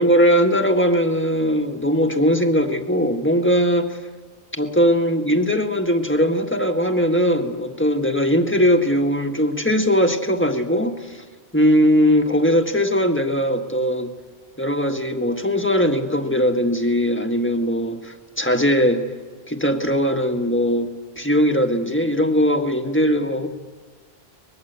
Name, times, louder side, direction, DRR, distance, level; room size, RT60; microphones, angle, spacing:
voice 1, 0.0-4.0 4.5-11.2 11.5-14.1 14.6-19.0 19.5-20.9 21.2-23.5, equal, 10° left, 4 dB, 1.6 m, -20 dB
24.0 x 20.5 x 8.1 m, 1.5 s
omnidirectional pair, 1.1 m